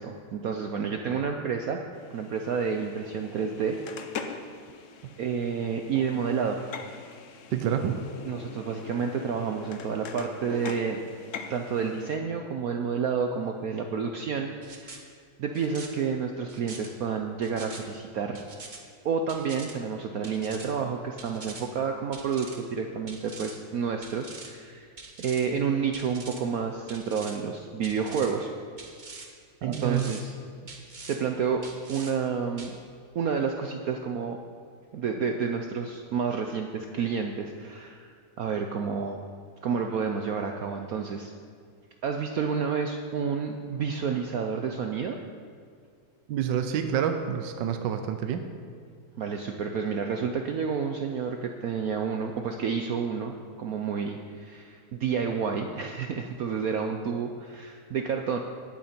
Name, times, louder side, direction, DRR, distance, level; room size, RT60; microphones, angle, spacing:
voice 1, 0.0-1.8 2.1-4.4 5.2-6.6 8.2-11.0 11.5-15.1 15.4-18.4 19.0-24.9 25.2-28.5 29.6-30.3 31.1-32.7 33.1-34.4 34.9-38.1 38.4-39.2 39.6-41.3 42.0-45.2 49.2-58.4, right 6 dB, 85° right, 4 dB, 0.7 m, -30 dB
sound 1, 1.9-12.2, left 5 dB, 75° left, 0.7 m, -43 dB
voice 2, 7.5-8.0 29.6-30.2 46.3-48.4, right 9 dB, 65° right, 7 dB, 1.2 m, -28 dB
sound 2, 14.6-15.0 15.5-15.9 16.5-16.9 17.4-17.8 18.3-18.8 19.3-19.7 20.2-20.7 21.2-21.6 22.1-22.6 23.1-23.5 24.0-24.5 25.0-25.5 25.9-26.4 26.9-27.4 27.8-28.3 28.8-29.3 29.7-30.2 30.7-31.2 31.6-32.1 32.6-32.7, right 3 dB, 30° right, 0.9 m, -44 dB
18.0 x 8.7 x 4.4 m, 2.1 s
omnidirectional pair, 2.3 m